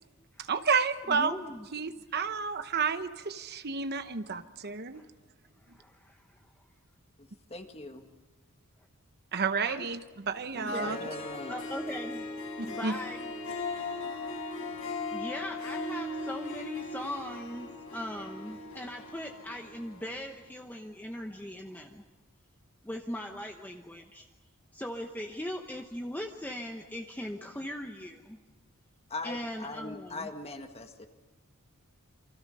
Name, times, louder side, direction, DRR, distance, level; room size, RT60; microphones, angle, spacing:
voice 1, 0.5-1.3 1.7-5.0 9.3-11.0 12.6-13.0, right 5 dB, 50° right, 10 dB, 1.0 m, -31 dB
voice 2, 1.1-1.7 2.1-2.2 4.9-5.0 5.7-6.5 9.6-9.9 10.6-11.1 11.5-14.5 15.1-22.0 22.8-24.3 24.7-28.4 29.2-30.3, left 1 dB, 10° left, 3 dB, 1.0 m, -40 dB
voice 3, 7.2-8.1 10.5-11.5 29.1-31.1, left 2 dB, 30° left, 6 dB, 1.8 m, -41 dB
Harp, 10.4-10.5 10.6-20.2, left 2 dB, 65° left, 5.8 m, -38 dB
29.0 x 24.5 x 5.5 m, 1.2 s
head